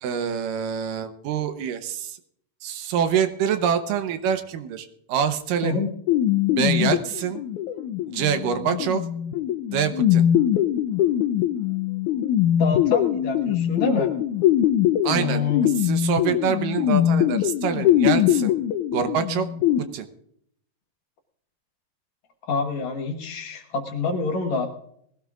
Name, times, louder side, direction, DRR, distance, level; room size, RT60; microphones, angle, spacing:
voice 1, 0.0-2.2 2.6-5.8 6.5-7.4 8.1-9.0 9.7-10.2 15.0-18.5 18.9-19.5 19.9-20.1, right 7 dB, 80° right, 8 dB, 2.5 m, -25 dB
sound 1, 6.1-19.8, left 11 dB, 80° left, 1.9 m, -22 dB
voice 2, 12.6-14.1 15.1-15.7 22.5-24.7, left 4 dB, 60° left, 3 dB, 2.4 m, -27 dB
20.5 x 16.5 x 2.5 m, 0.68 s
omnidirectional pair, 4.0 m